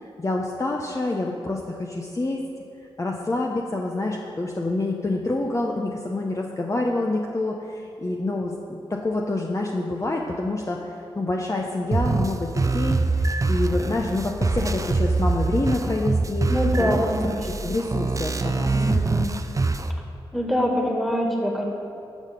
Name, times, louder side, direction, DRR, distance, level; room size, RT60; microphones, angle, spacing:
voice 1, 0.0-2.4 3.0-16.5 16.8-16.9 17.6-18.9, left 2 dB, 30° left, 0 dB, 0.8 m, -27 dB
sound 1, 11.9-19.9, right 3 dB, 30° right, 0.6 m, -24 dB
voice 2, 16.5-17.7 18.7-19.4 20.3-21.7, equal, ahead, 0 dB, 2.0 m, -25 dB
12.5 x 5.8 x 5.2 m, 2.7 s
cardioid pair, 50°, 10 cm